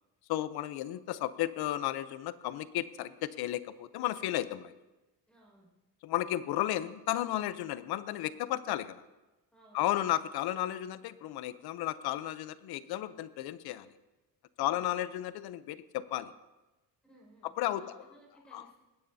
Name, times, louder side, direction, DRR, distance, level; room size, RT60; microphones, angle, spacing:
voice 1, 0.3-4.7 6.0-9.0 9.7-13.9 14.6-16.3 17.6-18.0 18.5-18.7, left 13 dB, 90° left, 14 dB, 0.7 m, -33 dB
voice 2, 5.3-5.7 9.5-10.2 14.6-14.9 17.0-18.7, right 1 dB, 5° left, -2 dB, 5.4 m, -60 dB
20.0 x 16.0 x 2.7 m, 1.1 s
cardioid pair, 170°, 37 cm